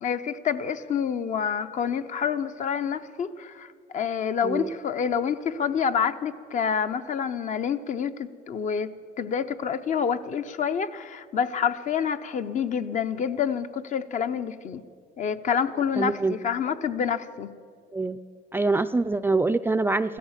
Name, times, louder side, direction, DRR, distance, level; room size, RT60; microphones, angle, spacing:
voice 1, 0.0-14.8 15.2-17.5, left 7 dB, 45° left, 10 dB, 0.7 m, -28 dB
voice 2, 16.0-16.4 17.9-18.2 18.5-20.2, right 3 dB, 15° right, 10 dB, 0.3 m, -24 dB
15.0 x 13.0 x 7.3 m, 2.2 s
cardioid pair, 110°, 17 cm